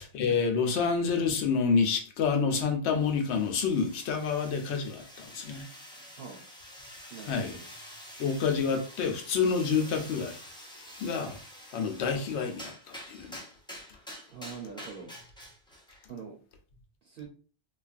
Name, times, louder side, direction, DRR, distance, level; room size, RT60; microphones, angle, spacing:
voice 1, 0.0-5.6 7.3-7.6 8.2-10.4 11.0-11.4 11.7-13.4, left 5 dB, 85° left, 0.9 m, -28 dB
sound 1, 2.9-16.1, equal, 5° left, 0.3 m, -48 dB
voice 2, 7.1-7.6 14.3-15.1 16.1-16.4 17.0-17.3, right 6 dB, 60° right, 0.8 m, -43 dB
3.2 x 2.3 x 2.4 m
omnidirectional pair, 1.1 m